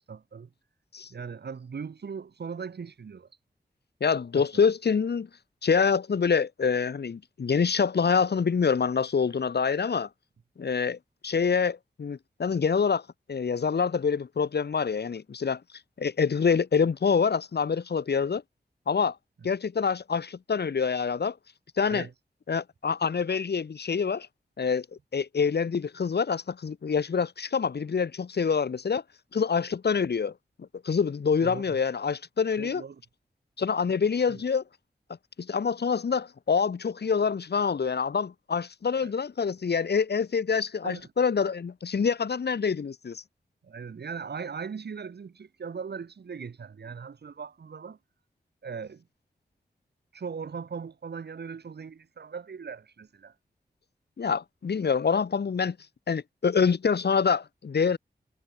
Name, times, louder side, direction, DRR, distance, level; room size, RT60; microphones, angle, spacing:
voice 1, 0.1-0.5 1.1-3.3 4.3-4.5 21.9-22.1 31.4-31.8 32.6-33.0 34.3-34.4 39.0-39.1 40.8-41.1 43.6-48.0 48.6-49.0 50.1-53.3, right 6 dB, 85° right, 7.6 m, -39 dB
voice 2, 4.0-5.3 5.6-10.1 10.6-11.0 11.2-13.0 13.3-15.6 16.0-18.4 18.9-19.2 19.4-21.4 21.8-22.1 22.5-24.3 24.6-24.9 25.1-29.0 29.3-30.3 30.8-32.8 33.6-34.6 35.4-43.2 54.2-55.8 56.1-58.0, left 6 dB, 85° left, 3.9 m, -26 dB
wide cardioid pair, 75°, 17 cm